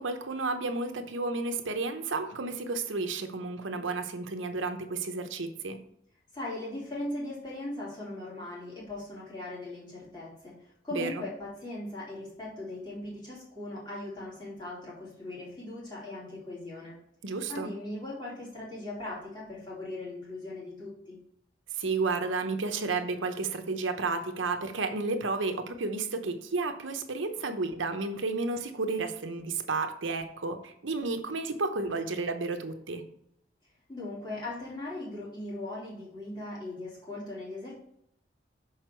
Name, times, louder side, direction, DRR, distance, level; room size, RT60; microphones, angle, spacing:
voice 1, 0.0-5.8 10.9-11.1 17.2-17.7 21.8-33.0, right 3 dB, 85° right, 7 dB, 0.9 m, -32 dB
voice 2, 6.3-17.0 17.5-21.2 33.9-37.7, left 2 dB, 25° left, -7 dB, 2.8 m, -39 dB
6.5 x 4.8 x 4.5 m, 0.73 s
head